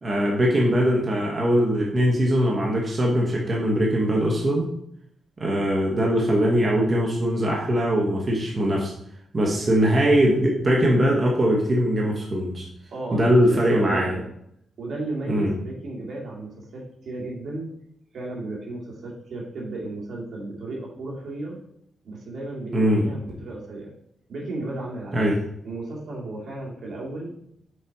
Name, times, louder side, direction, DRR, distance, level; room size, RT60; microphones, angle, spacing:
voice 1, 0.0-4.7 5.4-8.9 9.3-12.7 13.1-14.1 15.3-15.5 22.7-23.0 25.1-25.4, equal, 35° right, -2 dB, 1.3 m, -21 dB
voice 2, 12.9-14.3 14.8-17.7 18.1-21.6 22.0-23.9 24.3-25.2 25.6-27.3, right 2 dB, 70° right, -3 dB, 2.3 m, -34 dB
6.6 x 4.2 x 4.8 m, 0.74 s
cardioid pair, 95°, 0 cm